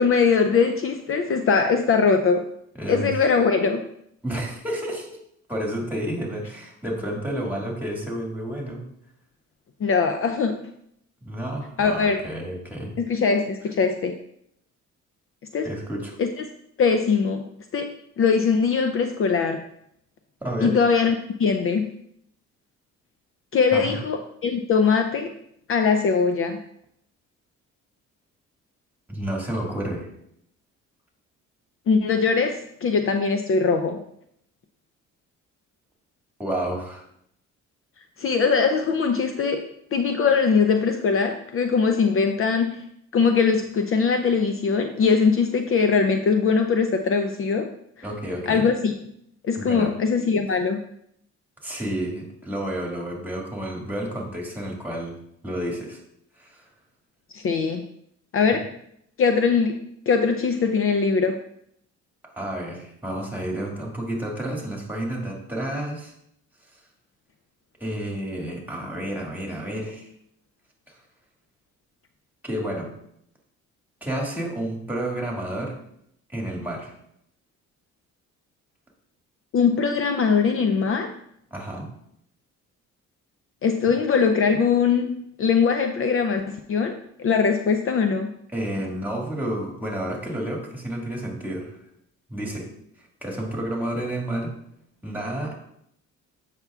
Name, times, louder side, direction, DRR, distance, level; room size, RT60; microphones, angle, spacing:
voice 1, 0.0-2.4 2.9-3.8 9.8-10.6 11.8-12.2 13.1-14.2 15.5-15.7 16.2-16.4 16.8-17.4 17.7-19.6 20.6-21.9 23.5-25.3 25.7-26.6 31.9-34.0 38.2-39.6 39.9-42.8 43.1-47.7 48.5-48.9 49.4-50.8 57.3-57.9 58.3-58.7 59.2-59.8 60.1-61.4 79.5-81.1 83.6-88.3, left 5 dB, 45° left, 6 dB, 0.5 m, -21 dB
voice 2, 2.8-3.1 4.2-5.2 5.5-8.9 11.2-13.0 15.6-16.2 20.4-20.8 23.7-24.0 29.1-30.1 36.4-37.0 48.0-48.7 49.6-49.9 51.6-55.2 55.4-56.0 56.4-56.7 62.4-66.1 67.8-70.1 70.9-71.0 72.4-72.9 74.0-75.8 76.3-76.9 81.5-81.9 88.5-91.8 92.3-92.7 93.2-94.6 95.0-95.6, right 1 dB, 5° right, -1 dB, 2.0 m, -30 dB
7.8 x 5.8 x 2.4 m, 0.72 s
cardioid pair, 90°, 30 cm